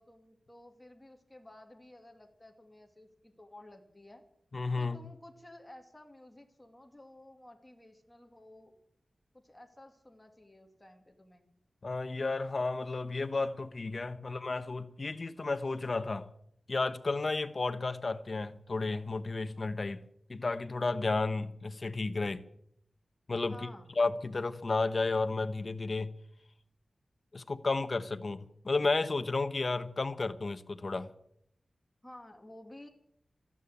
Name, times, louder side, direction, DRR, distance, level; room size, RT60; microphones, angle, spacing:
voice 1, 0.0-4.2 4.8-8.7 9.3-11.5 23.5-23.9 32.0-32.9, left 1 dB, 10° left, 3 dB, 2.4 m, -53 dB
voice 2, 4.5-5.0 11.8-16.3 16.7-20.0 20.3-22.4 23.3-23.7 24.0-26.1 27.3-31.1, left 3 dB, 40° left, 10 dB, 1.0 m, -32 dB
14.0 x 11.0 x 8.6 m, 0.71 s
wide cardioid pair, 115°, 0 cm